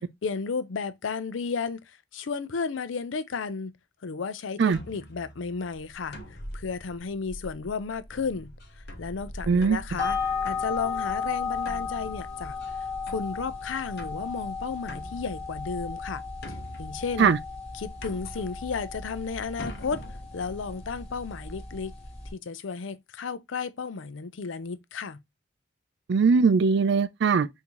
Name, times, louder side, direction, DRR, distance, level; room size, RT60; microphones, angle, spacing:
voice 1, 0.2-3.7 4.0-6.2 6.5-10.2 10.4-12.6 13.1-16.2 16.5-17.3 17.7-20.0 20.3-21.9 22.3-25.2, left 5 dB, 85° left, 0.5 m, -33 dB
sound 1, 4.7-21.5, equal, 60° left, 1.1 m, -45 dB
voice 2, 9.5-9.8 17.2-17.4 26.1-27.5, right 5 dB, 65° right, 0.4 m, -20 dB
sound 2, 10.0-22.3, left 5 dB, 35° left, 2.1 m, -34 dB
5.7 x 2.7 x 3.0 m
head